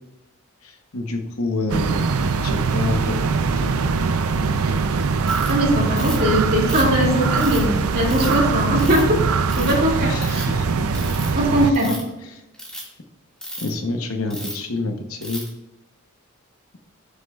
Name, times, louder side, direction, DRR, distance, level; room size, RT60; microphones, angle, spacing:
voice 1, 0.6-2.1 2.4-3.3 3.6-3.9 10.0-10.9 11.2-11.8 12.2-12.4 13.6-15.4, left 3 dB, 70° left, 4 dB, 0.9 m, -28 dB
sound 1, 1.7-11.7, right 4 dB, 75° right, 0.5 m, -22 dB
Ratchet pawl, 5.3-5.5 6.0-6.3 6.7-7.6 8.1-8.3 8.8-9.1 9.5-9.8 10.1-10.4 10.9-11.3 11.7-12.1 12.5-12.8 13.4-13.7 14.3-14.6 15.2-15.5, equal, 5° left, 1.9 m, -34 dB
voice 2, 5.5-9.0 9.5-10.5 11.3-12.0, equal, 45° right, -2 dB, 2.4 m, -20 dB
12.5 x 6.6 x 2.4 m, 0.94 s
head